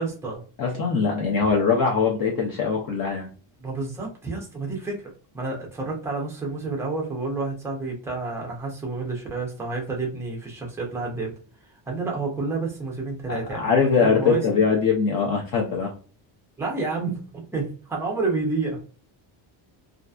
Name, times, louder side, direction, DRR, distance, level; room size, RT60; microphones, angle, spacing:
voice 1, 0.0-0.4 3.6-11.3 11.9-14.7 16.6-18.8, right 3 dB, 5° right, -1 dB, 0.4 m, -29 dB
voice 2, 0.6-3.3 13.3-15.9, left 5 dB, 45° left, 0 dB, 0.6 m, -22 dB
2.6 x 2.4 x 2.2 m, 0.39 s
cardioid pair, 175°, 48 cm